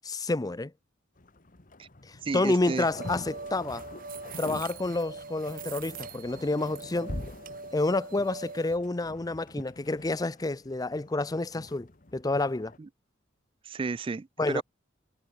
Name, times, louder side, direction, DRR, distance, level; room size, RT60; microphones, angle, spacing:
voice 1, 0.0-0.7 2.1-3.8 4.4-7.1 7.7-12.7 14.4-14.6, left 2 dB, 20° left, 0.5 m, -29 dB
sound 1, 1.2-12.8, left 1 dB, 45° left, 1.6 m, -45 dB
voice 2, 2.2-2.9 12.8-12.9 13.6-14.6, right 4 dB, 25° right, 0.3 m, -32 dB
sound 2, 3.0-8.8, right 4 dB, 45° right, 2.7 m, -43 dB
head